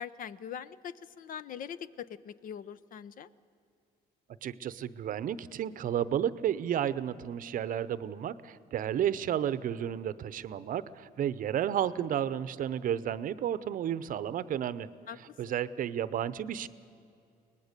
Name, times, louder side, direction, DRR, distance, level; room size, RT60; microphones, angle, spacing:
voice 1, 0.0-3.3 15.1-15.2, left 8 dB, 55° left, 16 dB, 0.7 m, -42 dB
voice 2, 4.4-14.9 15.4-16.7, right 10 dB, 55° right, 16 dB, 0.7 m, -32 dB
23.0 x 19.5 x 6.7 m, 2.6 s
cardioid pair, 110°, 17 cm